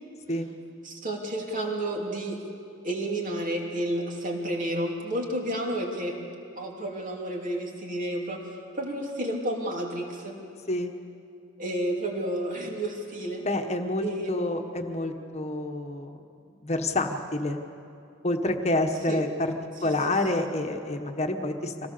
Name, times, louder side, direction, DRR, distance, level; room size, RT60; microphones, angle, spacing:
voice 1, 0.8-2.4 2.8-6.2 6.5-8.4 8.7-10.4 11.6-13.5 14.0-14.3 19.1-19.2 19.8-19.9 20.3-20.5, right 1 dB, 45° right, 0 dB, 2.9 m, -31 dB
voice 2, 13.4-16.2 16.5-17.6 18.2-19.5 19.8-21.9, left 2 dB, 35° left, 5 dB, 1.3 m, -28 dB
25.5 x 17.5 x 6.8 m, 2.6 s
head